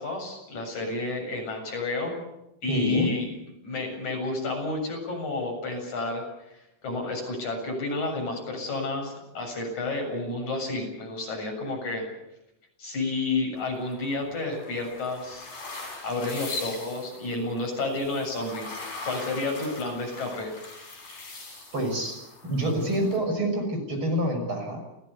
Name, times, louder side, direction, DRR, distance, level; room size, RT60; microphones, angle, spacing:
voice 1, 0.0-2.1 2.6-3.3 3.6-6.3 6.8-12.1 12.8-15.5 16.0-18.8 19.1-20.6, left 3 dB, 55° left, 2 dB, 8.7 m, -30 dB
voice 2, 2.7-3.1 21.7-22.2 22.4-24.8, right 1 dB, 35° right, 3 dB, 7.1 m, -27 dB
sound 1, 13.5-23.2, left 3 dB, 85° left, 9.5 m, -42 dB
30.0 x 17.5 x 8.3 m, 0.87 s
omnidirectional pair, 3.9 m